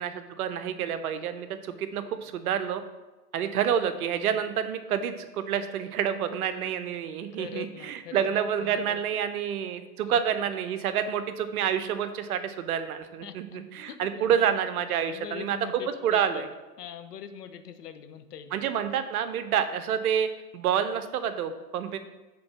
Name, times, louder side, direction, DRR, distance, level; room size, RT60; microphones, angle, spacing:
voice 1, 0.0-2.8 3.3-16.5 18.5-22.0, right 8 dB, 65° right, 10 dB, 0.7 m, -28 dB
voice 2, 7.3-9.0 10.1-10.2 13.2-13.6 13.9-14.6 15.1-16.5 16.8-18.6, left 8 dB, 75° left, 9 dB, 0.7 m, -42 dB
5.2 x 3.8 x 5.8 m, 1.2 s
hypercardioid pair, 110°, 47 cm